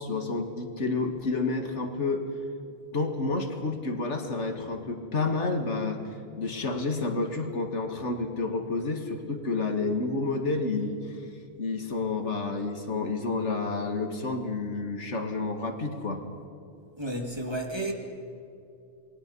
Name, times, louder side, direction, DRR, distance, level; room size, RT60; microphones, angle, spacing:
voice 1, 0.0-2.2 2.9-6.0 6.4-11.2 11.6-16.2, left 3 dB, 70° left, 5 dB, 2.3 m, -30 dB
voice 2, 17.0-17.9, right 1 dB, 20° right, 2 dB, 2.3 m, -32 dB
27.5 x 21.0 x 5.5 m, 2.7 s
omnidirectional pair, 1.2 m